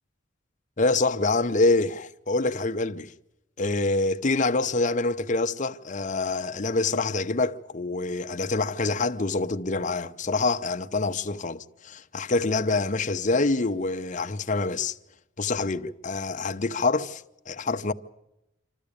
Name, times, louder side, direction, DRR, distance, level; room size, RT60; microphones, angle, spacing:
voice 1, 0.8-3.1 3.6-15.0 15.4-17.9, left 3 dB, 40° left, 0.8 m, -26 dB
27.0 x 13.5 x 8.6 m
head